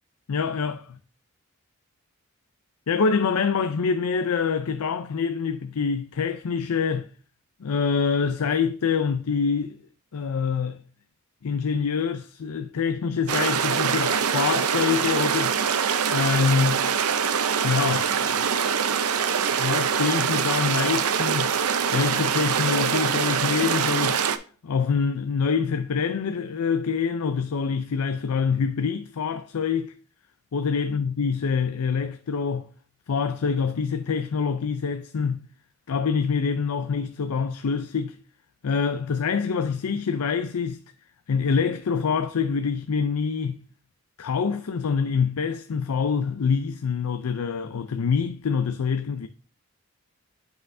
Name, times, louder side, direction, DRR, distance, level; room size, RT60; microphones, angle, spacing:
voice 1, 0.3-1.0 2.9-7.1 7.6-9.8 10.1-10.8 11.4-15.6 16.1-16.9 17.6-18.5 19.6-21.6 21.9-24.2 24.6-29.9 30.5-32.7 33.1-35.5 35.9-38.2 38.6-40.8 41.3-43.7 44.2-49.3, left 5 dB, 90° left, 0.5 m, -25 dB
sound 1, 13.3-24.4, right 7 dB, 90° right, 0.6 m, -24 dB
7.6 x 5.6 x 2.6 m
head